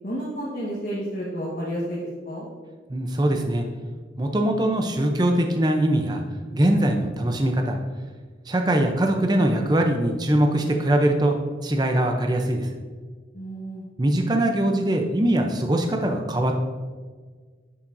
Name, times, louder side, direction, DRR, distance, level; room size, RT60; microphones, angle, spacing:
voice 1, 0.0-2.5 13.3-13.8, equal, 50° left, -6 dB, 1.3 m, -31 dB
voice 2, 2.9-3.6 4.2-6.2 6.5-7.8 8.5-11.4 11.6-12.7 14.0-16.6, right 1 dB, 25° right, 3 dB, 0.6 m, -22 dB
11.0 x 5.8 x 2.6 m, 1.5 s
head